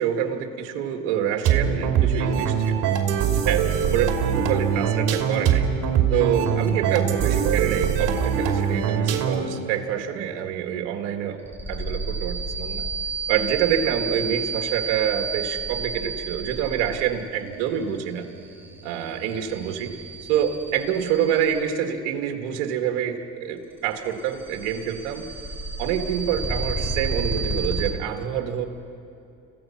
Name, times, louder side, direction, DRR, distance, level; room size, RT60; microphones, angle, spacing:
voice 1, 0.0-2.8 3.5-3.7 3.9-5.7 6.1-11.4 11.7-12.9 13.3-18.3 18.8-19.9 20.3-25.2 25.8-28.6, right 9 dB, 85° right, 4 dB, 2.0 m, -26 dB
sound 1, 1.5-9.6, right 8 dB, 65° right, 2.8 m, -22 dB
sound 2, 8.1-8.7 9.0-9.5 11.4-21.8 23.8-27.9, right 3 dB, 5° right, 4.9 m, -31 dB
29.5 x 16.5 x 5.9 m, 2.7 s
supercardioid pair, 80°, 34 cm